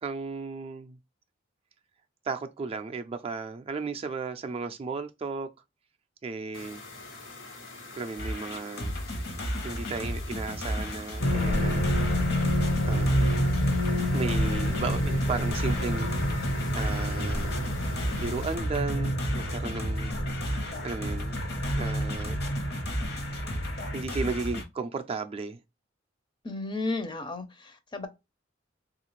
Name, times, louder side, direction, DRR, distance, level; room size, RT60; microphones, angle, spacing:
voice 1, 0.0-1.0 2.2-5.5 6.2-6.8 7.9-8.9 9.6-12.1 12.9-13.2 14.0-16.1 16.7-17.7 18.2-20.1 20.5-21.4 21.7-22.4 23.9-25.6, right 4 dB, 30° right, 0.3 m, -34 dB
sound 1, 6.5-18.6, left 3 dB, 90° left, 1.1 m, -46 dB
sound 2, 8.2-24.6, equal, 55° left, 0.9 m, -34 dB
sound 3, 11.2-24.0, equal, 75° left, 1.3 m, -29 dB
voice 2, 26.4-28.1, left 2 dB, 25° left, 0.5 m, -33 dB
3.5 x 2.4 x 3.0 m
head